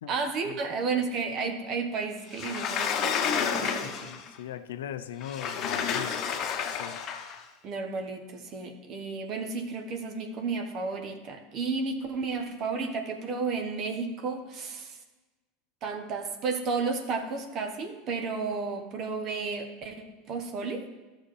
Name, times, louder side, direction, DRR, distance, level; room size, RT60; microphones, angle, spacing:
voice 1, 0.1-4.1 7.6-15.0 15.8-20.9, right 4 dB, 45° right, 5 dB, 1.2 m, -32 dB
Sliding door, 2.3-4.3 5.2-7.4, left 7 dB, 45° left, 0.9 m, -30 dB
voice 2, 3.8-6.2 6.8-7.0, left 10 dB, 75° left, 11 dB, 0.5 m, -39 dB
14.5 x 6.4 x 3.2 m, 1.2 s
hypercardioid pair, 80°, 0 cm